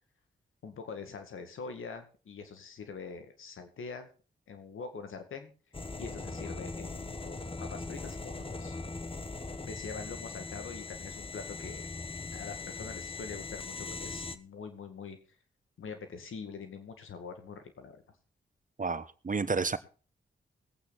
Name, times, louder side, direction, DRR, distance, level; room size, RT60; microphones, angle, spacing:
voice 1, 0.6-4.1 4.5-5.5 6.0-8.8 9.7-11.9 12.3-15.2 15.8-18.0, left 5 dB, 80° left, 8 dB, 2.1 m, -44 dB
sound 1, 5.7-14.4, left 3 dB, 25° left, 1.2 m, -40 dB
voice 2, 18.8-19.8, right 4 dB, 40° right, 14 dB, 1.1 m, -31 dB
20.0 x 8.7 x 4.2 m, 0.37 s
supercardioid pair, 40°, 20 cm